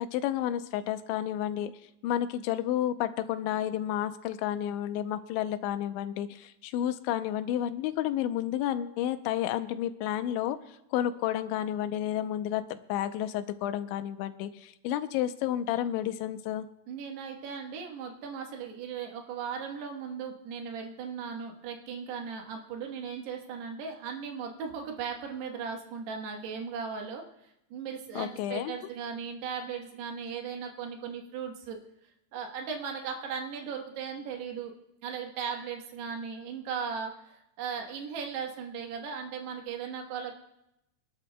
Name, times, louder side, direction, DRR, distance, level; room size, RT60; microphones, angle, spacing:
voice 1, 0.0-1.7 2.0-16.7 28.2-28.8, left 11 dB, 90° left, 10 dB, 3.0 m, -31 dB
voice 2, 16.9-27.2 27.7-31.8 32.3-34.7 35.0-40.4, right 6 dB, 70° right, 2 dB, 3.2 m, -37 dB
25.5 x 12.0 x 2.2 m, 0.85 s
omnidirectional pair, 5.2 m